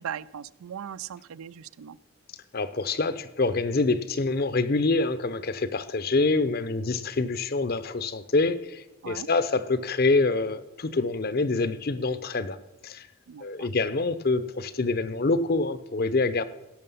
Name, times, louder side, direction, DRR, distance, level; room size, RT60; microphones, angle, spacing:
voice 1, 0.0-2.0 9.0-9.3 13.3-13.7, right 9 dB, 85° right, 0.4 m, -39 dB
voice 2, 2.5-12.6 12.8-13.1 13.4-16.4, left 3 dB, 45° left, 0.6 m, -26 dB
16.5 x 6.6 x 5.5 m
head